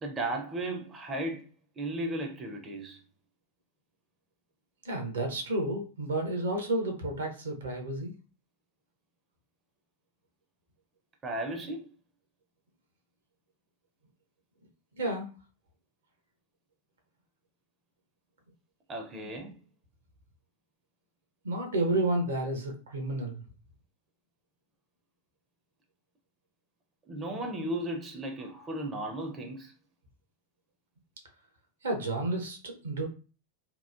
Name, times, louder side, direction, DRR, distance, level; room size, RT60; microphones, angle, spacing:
voice 1, 0.0-1.4 1.8-3.0 11.2-11.8 18.9-19.6 27.1-29.7, right 1 dB, 20° right, 0.4 m, -35 dB
voice 2, 4.8-8.1 15.0-15.3 19.1-19.3 21.4-23.4 31.8-33.1, right 2 dB, 70° right, 0.6 m, -31 dB
2.9 x 2.0 x 2.2 m
figure-of-eight pair, 90°, 0 cm